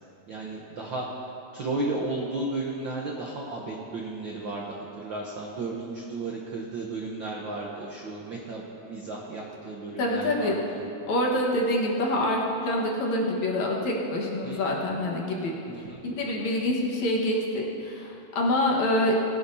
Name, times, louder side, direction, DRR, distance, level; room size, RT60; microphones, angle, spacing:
voice 1, 0.3-1.1 1.5-10.8 14.4-14.8 15.7-16.0, right 2 dB, 80° right, -2 dB, 1.0 m, -34 dB
voice 2, 10.0-10.6 11.1-15.5 16.0-19.2, left 1 dB, 65° left, -2 dB, 2.7 m, -26 dB
19.5 x 12.0 x 2.8 m, 2.8 s
omnidirectional pair, 3.6 m